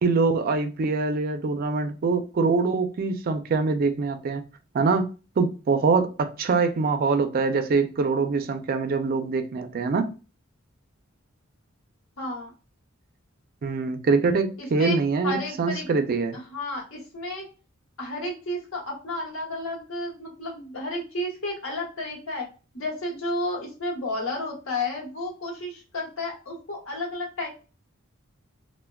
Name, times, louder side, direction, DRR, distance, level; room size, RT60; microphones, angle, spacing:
voice 1, 0.0-4.4 4.7-5.1 5.4-10.1 13.6-16.4, right 4 dB, 45° right, 0.4 m, -24 dB
voice 2, 12.2-12.5 14.6-15.0 15.2-15.9 16.3-17.4 18.0-22.5 22.7-27.5, left 1 dB, 70° left, 1.1 m, -32 dB
3.3 x 2.1 x 2.2 m
head